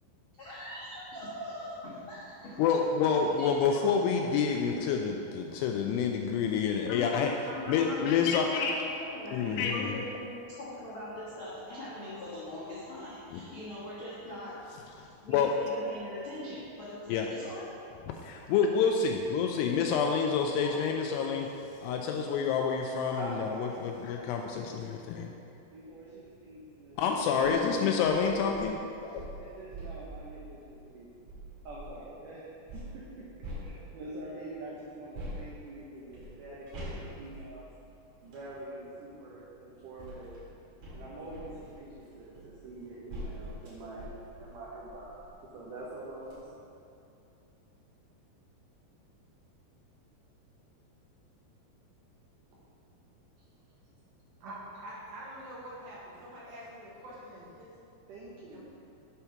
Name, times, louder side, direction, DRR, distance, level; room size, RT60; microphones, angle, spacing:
voice 1, 0.4-2.6 3.4-4.0 7.4-10.3 10.6-14.6 15.2-17.7, left 1 dB, 65° left, -11 dB, 1.2 m, -42 dB
voice 2, 2.6-7.3 7.7-8.7 9.3-10.0 13.3-13.4 15.0-15.5 17.1-17.3 18.3-25.3 27.0-28.8 29.1-29.2, left 6 dB, 85° left, 2 dB, 2.5 m, -28 dB
voice 3, 23.2-24.9 25.6-27.7 28.2-28.8 29.4-31.1 31.6-33.3 33.5-37.7 38.2-40.4 40.9-45.1 45.5-46.6 58.1-58.7, right 2 dB, 80° right, -6 dB, 1.8 m, -45 dB
sound 1, 27.2-27.6 28.0-32.1 32.7-34.2 35.1-38.5 39.4-45.4 45.8-45.9 46.2-46.4, equal, 50° right, 3.1 m, -45 dB
voice 4, 54.4-57.7 58.5-58.7, right 1 dB, 65° right, -7 dB, 2.8 m, -45 dB
8.4 x 4.4 x 5.8 m, 2.7 s
omnidirectional pair, 5.1 m